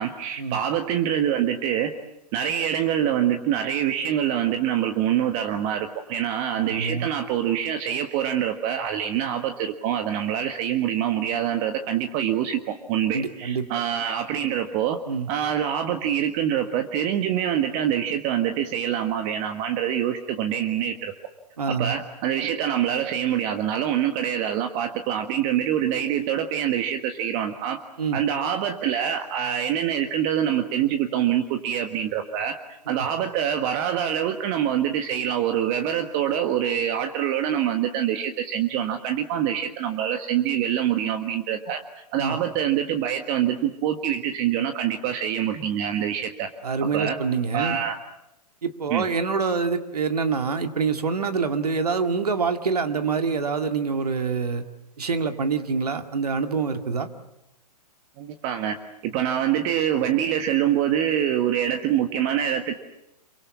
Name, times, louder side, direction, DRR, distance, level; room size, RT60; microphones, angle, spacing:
voice 1, 0.0-1.9 2.3-15.0 15.3-21.1 21.7-27.8 28.1-32.6 32.9-41.8 42.1-46.5 46.9-47.2 47.5-48.0 48.9-49.1 58.2-58.8 59.0-62.8, right 10 dB, 30° right, 6 dB, 1.6 m, -25 dB
voice 2, 6.7-7.1 13.1-13.6 15.1-15.3 21.6-21.9 28.0-28.2 32.9-33.1 42.2-42.4 46.6-47.8 48.6-54.6 55.0-57.1, right 5 dB, 70° right, 6 dB, 2.2 m, -26 dB
27.5 x 24.0 x 7.2 m, 0.88 s
figure-of-eight pair, 115°, 21 cm